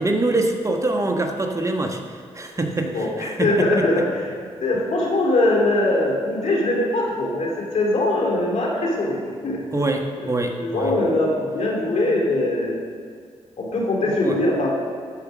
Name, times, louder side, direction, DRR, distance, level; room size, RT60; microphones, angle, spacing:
voice 1, 0.0-3.9 9.7-10.9 14.1-14.4, right 2 dB, 25° right, 3 dB, 1.3 m, -24 dB
voice 2, 2.9-4.2 4.6-9.6 10.2-10.3 10.6-12.8 13.6-14.7, left 2 dB, 70° left, -2 dB, 2.5 m, -21 dB
13.0 x 5.2 x 6.2 m, 2.1 s
supercardioid pair, 50°, 12 cm